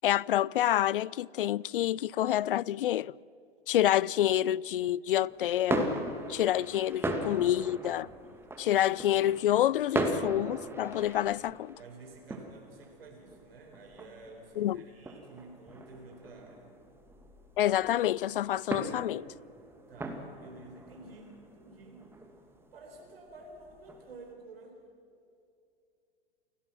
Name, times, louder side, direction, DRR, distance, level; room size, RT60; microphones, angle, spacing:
voice 1, 0.0-3.1 3.7-5.9 6.3-8.1 8.6-11.8 14.6-14.8 17.6-19.3, left 12 dB, 60° left, 0.5 m, -28 dB
sound 1, 5.3-24.3, right 2 dB, 5° right, 2.1 m, -39 dB
voice 2, 11.8-16.7 19.9-22.1 22.7-24.8, right 2 dB, 65° right, 4.3 m, -51 dB
29.5 x 18.0 x 6.0 m
figure-of-eight pair, 100°, 31 cm